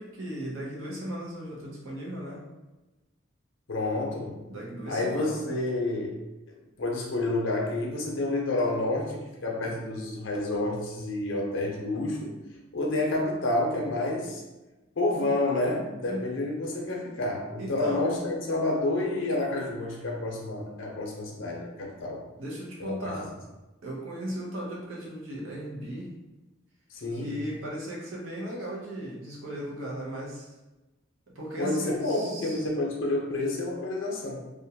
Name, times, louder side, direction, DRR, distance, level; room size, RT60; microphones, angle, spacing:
voice 1, 0.0-2.4 4.5-5.6 16.1-16.3 17.6-18.1 22.4-23.4 23.8-26.1 27.1-30.5 31.3-32.7, equal, 80° right, -3 dB, 0.7 m, -37 dB
voice 2, 3.7-4.4 4.9-6.1 6.5-12.4 12.7-14.4 15.0-22.2 22.8-23.3 26.9-27.3 31.6-34.4, left 2 dB, 70° left, -1 dB, 0.6 m, -29 dB
2.4 x 2.1 x 2.7 m, 1.1 s
head